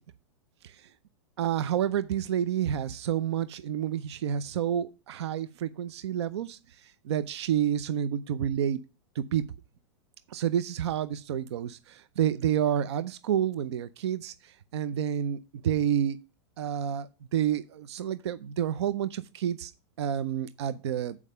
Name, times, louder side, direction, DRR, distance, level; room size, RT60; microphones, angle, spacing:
voice 1, 1.4-8.8 9.2-9.4 10.3-16.2 16.6-19.7 20.0-21.2, right 9 dB, 80° right, 0.6 m, -29 dB
7.4 x 4.8 x 6.6 m
supercardioid pair, 155°, 14 cm